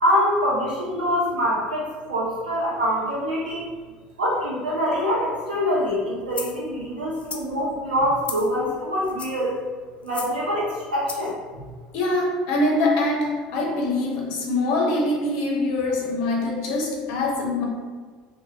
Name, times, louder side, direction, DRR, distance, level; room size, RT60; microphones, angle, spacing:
voice 1, 0.0-3.7 4.2-9.5 10.0-11.6, equal, 90° right, -5 dB, 0.8 m, -24 dB
sound 1, 6.3-6.6 7.1-7.5 8.2-8.6 9.0-9.5 10.1-10.4 11.1-11.3, left 5 dB, 30° left, 0.4 m, -35 dB
voice 2, 11.9-17.6, left 2 dB, 65° left, -1 dB, 0.7 m, -24 dB
2.6 x 2.2 x 2.8 m, 1.5 s
hypercardioid pair, 70°, 4 cm